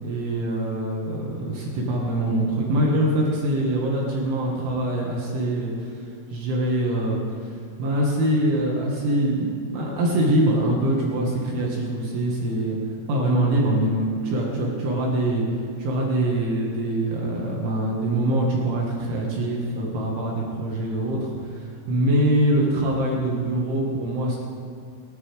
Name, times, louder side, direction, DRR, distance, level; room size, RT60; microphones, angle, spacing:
voice 1, 0.0-6.0 6.3-7.5 7.8-9.5 9.7-12.8 13.1-15.4 15.8-24.4, right 1 dB, 75° right, -3 dB, 4.2 m, -24 dB
27.5 x 9.6 x 3.6 m, 2.3 s
omnidirectional pair, 5.7 m